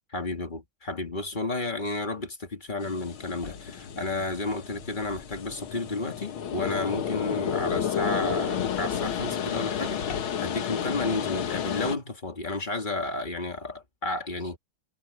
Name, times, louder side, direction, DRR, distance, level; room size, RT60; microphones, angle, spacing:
voice 1, 0.1-14.6, left 2 dB, 25° left, 2.1 m, -32 dB
sound 1, 2.8-12.0, left 8 dB, 75° left, 2.1 m, -31 dB
sound 2, 3.3-5.8 6.3-6.4 6.8-6.9 7.1-7.2 7.5-7.6 7.9-10.5, left 4 dB, 55° left, 2.6 m, -44 dB
omnidirectional pair, 2.3 m